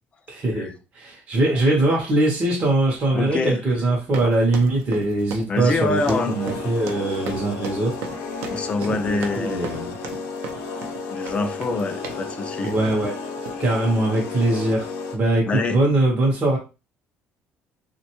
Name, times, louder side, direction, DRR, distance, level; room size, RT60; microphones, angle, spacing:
voice 1, 0.3-8.0 8.9-9.9 12.6-13.2 13.6-16.6, right 2 dB, 25° right, 0.6 m, -22 dB
voice 2, 1.4-1.7 3.1-3.6 5.5-6.4 8.5-9.7 11.1-12.7 15.5-15.8, left 3 dB, 25° left, 0.3 m, -26 dB
sound 1, 4.0-12.3 12.6-13.0 13.4-13.6, right 6 dB, 70° right, 0.5 m, -36 dB
sound 2, 6.0-15.2, left 4 dB, 70° left, 0.6 m, -33 dB
3.3 x 2.2 x 2.8 m
cardioid pair, 180°, 5 cm